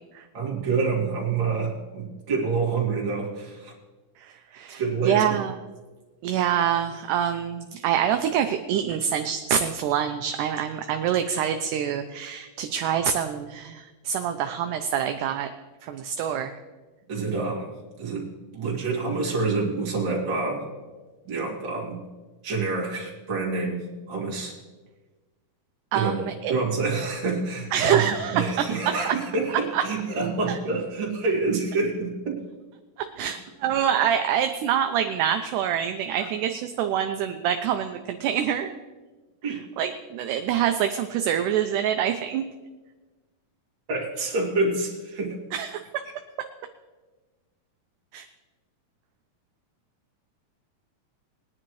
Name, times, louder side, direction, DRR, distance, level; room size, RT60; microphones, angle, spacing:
voice 1, 0.3-3.7 4.7-5.2 17.1-17.7 18.0-20.7 21.3-22.0 22.4-24.5 25.9-26.1 26.5-32.4 39.4-39.6 43.9-45.4, right 4 dB, 35° right, -3 dB, 2.7 m, -27 dB
voice 2, 4.2-5.6 6.2-15.5 15.8-16.6 25.9-26.5 27.7-29.2 29.5-29.9 30.5-30.6 33.0-38.7 39.4-42.5 45.5-46.0 46.4-46.5 48.1-48.3, right 9 dB, 80° right, 7 dB, 2.0 m, -26 dB
20.5 x 10.0 x 3.1 m, 1.3 s
omnidirectional pair, 4.0 m